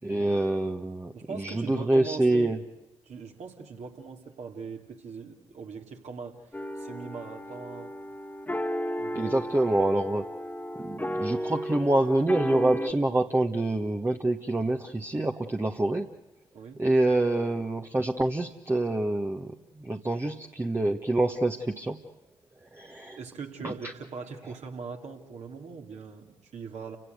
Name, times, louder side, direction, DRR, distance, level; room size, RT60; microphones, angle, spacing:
voice 1, 0.0-2.6 9.1-10.3 10.7-16.1 16.8-22.0 22.7-23.2 23.6-23.9, right 2 dB, 15° right, 3 dB, 1.3 m, -26 dB
voice 2, 1.1-2.5 3.0-6.5 6.7-7.9 9.0-9.4 16.5-16.8 23.2-27.0, right 5 dB, 60° right, 2 dB, 3.0 m, -41 dB
sound 1, 6.5-12.9, equal, 10° left, 1.7 m, -34 dB
30.0 x 17.0 x 8.0 m, 0.89 s
hypercardioid pair, 45°, 13 cm